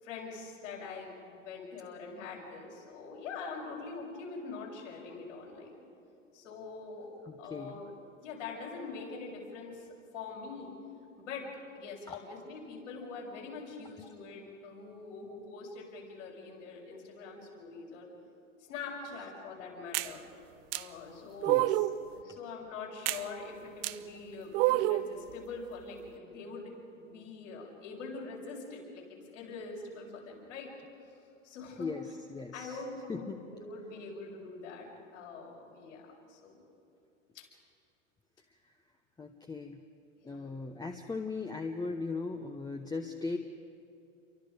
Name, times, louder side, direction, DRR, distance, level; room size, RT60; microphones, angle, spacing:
voice 1, 0.0-5.8 6.3-7.1 7.4-7.9 8.2-9.8 10.1-10.7 11.2-11.5 11.7-18.1 18.7-20.3 20.7-21.7 22.1-30.7 31.4-31.9 32.5-36.6 37.3-37.5 40.2-40.5, left 4 dB, 70° left, -2 dB, 7.2 m, -44 dB
voice 2, 7.2-7.8 12.1-12.2 14.0-14.1 21.5-21.9 31.8-32.8 33.1-33.4 38.6-38.7 39.2-39.8 40.2-43.4, left 3 dB, 10° left, 4 dB, 1.0 m, -38 dB
sound 1, 19.9-20.1 20.7-20.8 21.4-22.0 23.1-23.2 23.8-23.9 24.5-25.1, right 17 dB, 50° right, 0.8 m, -27 dB
29.0 x 24.0 x 5.2 m, 2.5 s
hypercardioid pair, 95°, 39 cm